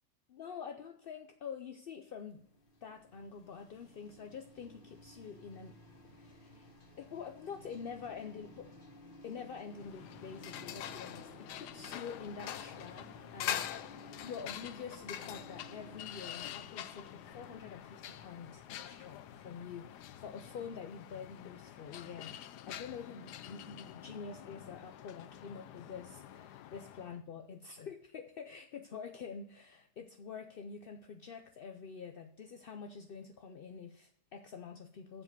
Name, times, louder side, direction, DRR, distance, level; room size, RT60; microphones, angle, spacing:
voice 1, 0.3-2.4 2.8-5.8 6.1-6.7 7.0-8.7 9.2-22.4 22.7-35.2, left 6 dB, 60° left, 4 dB, 0.6 m, -47 dB
Walk Past Drinking Fountain, 2.1-21.1, left 1 dB, 35° left, 1.3 m, -57 dB
sound 1, 9.7-27.2, left 11 dB, 85° left, 1.2 m, -45 dB
7.4 x 7.4 x 6.6 m, 0.71 s
omnidirectional pair, 1.7 m